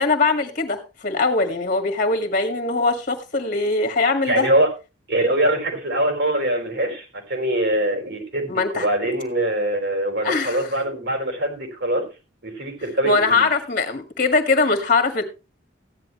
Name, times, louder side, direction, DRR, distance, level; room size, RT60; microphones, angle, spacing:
voice 1, 0.0-4.5 8.5-8.9 10.2-10.7 13.0-15.2, left 3 dB, 45° left, 7 dB, 1.8 m, -21 dB
voice 2, 4.2-4.7 5.1-12.0 12.4-13.5, right 1 dB, 60° right, 3 dB, 4.7 m, -23 dB
15.0 x 10.5 x 3.1 m, 0.28 s
head